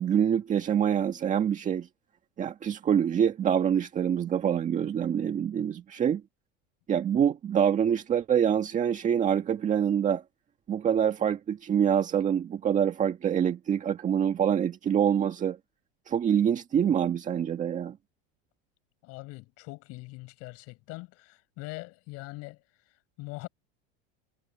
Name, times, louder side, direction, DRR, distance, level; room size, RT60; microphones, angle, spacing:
voice 1, 0.0-1.9 2.4-6.2 6.9-10.2 10.7-15.6 16.1-18.0, right 8 dB, 25° right, 1.8 m, -25 dB
voice 2, 19.0-23.5, left 23 dB, 55° left, 7.9 m, -43 dB
supercardioid pair, 150°, 30 cm